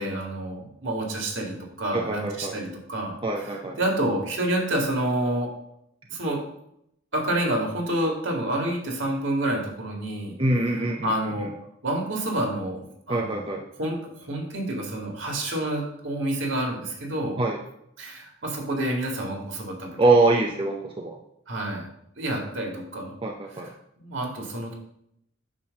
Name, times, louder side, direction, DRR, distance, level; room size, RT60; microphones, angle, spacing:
voice 1, 0.0-3.2 3.4-5.5 6.1-6.4 7.1-10.4 10.7-11.5 11.8-13.5 13.8-17.4 18.0-19.9 21.5-21.9 22.2-23.1 24.0-24.7, right 1 dB, 65° right, 0 dB, 2.1 m, -28 dB
voice 2, 1.9-2.6 3.2-3.8 10.4-11.1 11.4-11.5 13.1-13.6 17.4-17.6 20.0-21.2 23.2-23.7, right 2 dB, 25° right, 1 dB, 0.6 m, -24 dB
8.6 x 3.2 x 6.5 m, 0.75 s
head